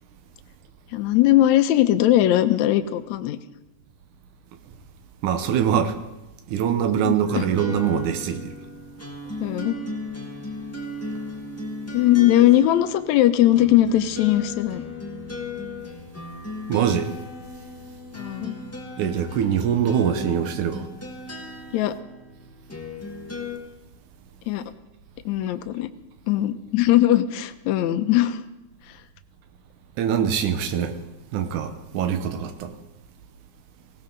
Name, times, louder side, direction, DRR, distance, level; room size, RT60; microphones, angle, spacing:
voice 1, 0.9-3.4 7.0-7.4 9.4-9.8 11.9-14.8 18.1-18.6 21.7-22.0 24.5-24.6 25.3-25.9 26.3-28.4 28.9-29.0, left 13 dB, 75° left, 2.0 m, -20 dB
voice 2, 5.2-6.0 6.5-8.5 16.7-17.1 19.0-20.9 30.0-31.0 31.3-32.8, right 8 dB, 85° right, 2.5 m, -23 dB
sound 1, 7.3-23.6, left 2 dB, 10° left, 0.8 m, -36 dB
sound 2, 9.2-19.7, left 3 dB, 65° right, 6.8 m, -48 dB
18.5 x 17.5 x 4.0 m
omnidirectional pair, 3.5 m